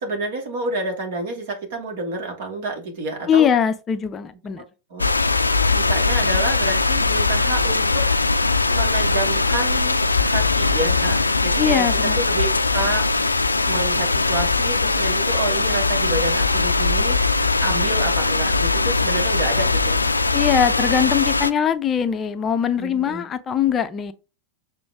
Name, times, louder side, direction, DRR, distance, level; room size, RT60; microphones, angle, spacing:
voice 1, 0.0-3.5 4.9-5.1 5.7-8.1 8.7-11.9 12.2-13.1 13.6-17.2 17.6-20.1 22.8-23.3, right 2 dB, 55° right, 2.3 m, -29 dB
voice 2, 3.3-4.6 11.6-12.2 20.3-24.1, left 8 dB, 25° left, 0.5 m, -21 dB
sound 1, 5.0-21.5, left 3 dB, 80° left, 0.4 m, -20 dB
6.9 x 4.4 x 3.5 m
figure-of-eight pair, 90°, 0 cm